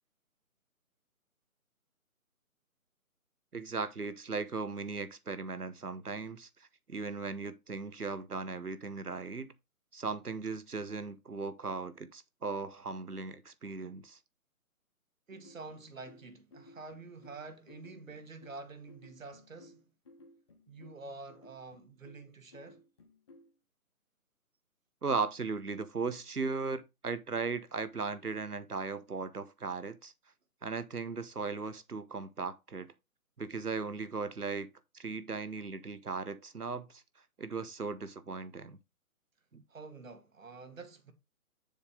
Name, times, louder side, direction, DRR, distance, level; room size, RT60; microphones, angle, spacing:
voice 1, 3.5-6.5 6.9-9.5 9.9-14.2 25.0-30.1 30.6-32.9 33.4-34.7 34.9-37.0 37.4-38.8 39.5-39.6, right 4 dB, 85° right, 1.2 m, -37 dB
sound 1, 15.3-23.5, left 2 dB, 20° left, 0.9 m, -58 dB
voice 2, 15.3-19.8 20.7-22.8 39.7-41.1, right 3 dB, 60° right, 1.8 m, -48 dB
6.9 x 4.1 x 5.0 m
figure-of-eight pair, 145°, 44 cm